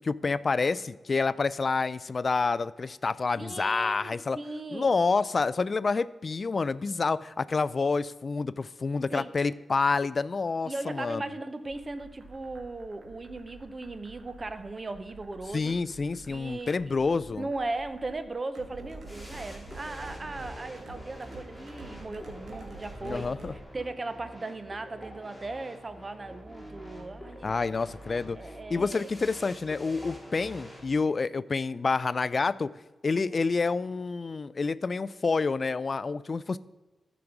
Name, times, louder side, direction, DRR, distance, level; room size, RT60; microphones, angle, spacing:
voice 1, 0.0-4.4 4.7-11.2 15.5-17.5 23.0-23.5 27.4-28.4 28.7-32.7 33.0-36.6, left 4 dB, 35° left, 17 dB, 0.3 m, -28 dB
voice 2, 3.4-4.9 9.1-9.3 10.7-15.7 16.3-16.7 17.4-27.6 28.4-29.1 33.1-33.4, right 2 dB, 25° right, 11 dB, 0.7 m, -38 dB
sound 1, 11.6-23.6, right 2 dB, 60° right, 1.7 m, -48 dB
sound 2, 19.0-30.9, equal, ahead, 2.2 m, -46 dB
13.0 x 5.1 x 5.9 m, 1.1 s
wide cardioid pair, 160°, 0 cm